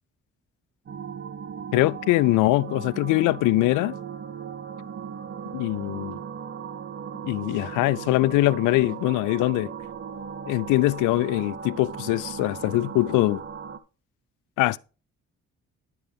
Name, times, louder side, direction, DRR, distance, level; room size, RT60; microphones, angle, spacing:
sound 1, 0.9-13.8, right 7 dB, 40° right, 0.9 m, -37 dB
voice 1, 1.7-3.9 5.5-6.2 7.2-9.7 10.5-13.4 14.6-14.8, left 18 dB, 80° left, 0.5 m, -22 dB
11.0 x 7.6 x 3.5 m
supercardioid pair, 65°, 30 cm